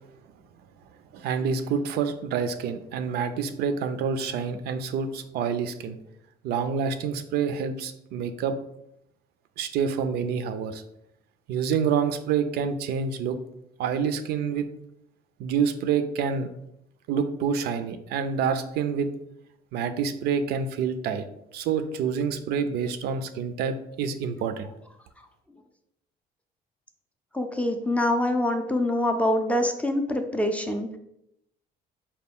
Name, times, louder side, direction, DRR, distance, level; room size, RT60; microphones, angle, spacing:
voice 1, 1.1-6.0 6.4-8.6 9.6-10.8 11.5-13.4 13.8-14.7 15.4-16.5 17.1-19.1 19.7-21.3 21.5-24.7, right 6 dB, 70° right, 9 dB, 0.4 m, -27 dB
voice 2, 27.3-31.0, left 1 dB, 10° left, 5 dB, 0.4 m, -25 dB
4.3 x 2.2 x 3.5 m, 0.79 s
cardioid pair, 110°, 17 cm